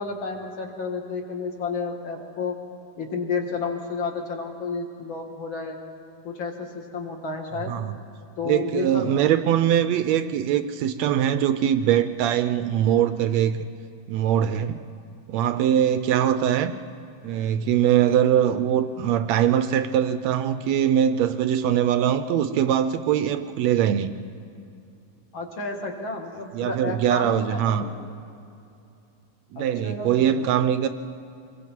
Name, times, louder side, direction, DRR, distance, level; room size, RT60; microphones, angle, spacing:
voice 1, 0.0-2.6 3.0-5.8 6.2-7.8 8.4-9.0 25.3-27.9 29.6-30.6, left 4 dB, 45° left, 3 dB, 2.2 m, -31 dB
voice 2, 8.4-13.6 14.1-14.8 15.3-16.7 17.2-24.2 26.5-27.9 29.5-30.9, right 10 dB, 80° right, 10 dB, 1.6 m, -22 dB
26.0 x 22.0 x 4.6 m, 2.6 s
omnidirectional pair, 3.7 m